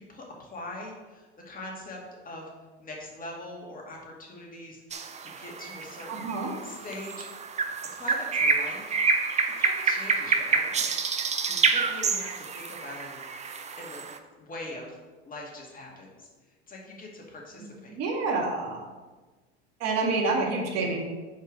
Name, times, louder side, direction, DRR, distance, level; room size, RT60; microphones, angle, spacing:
voice 1, 0.0-2.5 2.8-7.5 7.9-9.0 9.6-10.9 11.5-14.0 14.4-15.0 15.3-16.3 16.7-17.9, left 1 dB, 25° left, -1 dB, 2.1 m, -42 dB
sound 1, 4.9-14.2, right 5 dB, 20° right, 0.5 m, -28 dB
voice 2, 6.1-6.5 18.0-18.8 19.8-21.0, right 3 dB, 55° right, 0 dB, 1.9 m, -27 dB
5.4 x 4.7 x 6.2 m, 1.3 s
hypercardioid pair, 90°, 31 cm